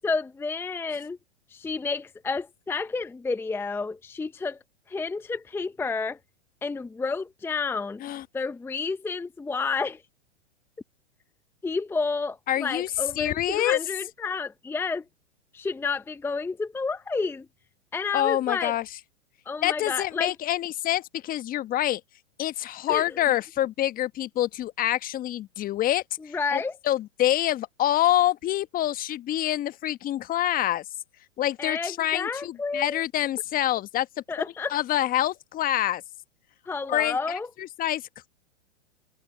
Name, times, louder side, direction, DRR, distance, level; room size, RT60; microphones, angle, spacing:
voice 1, 0.0-1.2 1.5-4.6 4.9-6.2 6.6-8.0 8.3-10.0 11.6-15.0 15.5-17.5 17.9-18.7 19.5-20.3 22.9-23.0 26.3-26.8 31.6-33.0 34.3-34.8 36.7-37.5, left 4 dB, 5° left, 0.9 m, -30 dB
voice 2, 12.5-12.9 13.2-13.8 18.1-18.8 19.6-22.0 22.4-30.8 31.4-34.1 34.7-36.0 36.9-38.0, left 13 dB, 25° left, 1.2 m, -26 dB
hypercardioid pair, 115°, 37 cm